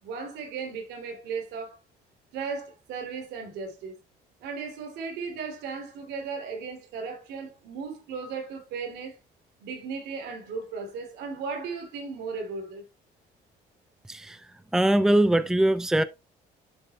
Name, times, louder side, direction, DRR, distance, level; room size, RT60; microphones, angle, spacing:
voice 1, 0.0-1.8 2.3-4.0 4.4-9.2 9.6-12.8, right 5 dB, 85° right, 3.1 m, -36 dB
voice 2, 14.1-16.0, right 1 dB, 5° right, 0.6 m, -22 dB
11.0 x 6.2 x 2.3 m
cardioid pair, 110°, 17 cm